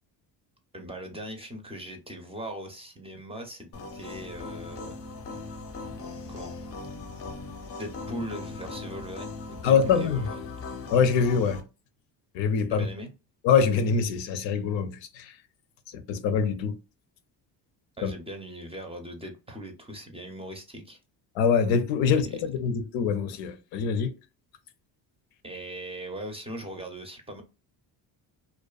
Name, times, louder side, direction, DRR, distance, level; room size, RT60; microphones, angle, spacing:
voice 1, 0.7-5.0 6.3-6.5 7.8-10.5 12.7-13.1 18.0-21.0 22.1-22.4 25.4-27.4, equal, 15° right, 0.5 m, -40 dB
sound 1, 3.7-11.6, left 3 dB, 30° left, 0.6 m, -39 dB
voice 2, 9.6-10.3 10.9-11.6 12.3-12.9 13.4-15.3 15.9-16.8 18.0-18.1 21.4-24.1, left 6 dB, 80° left, 0.6 m, -24 dB
2.5 x 2.3 x 2.3 m
cardioid pair, 90°, 45 cm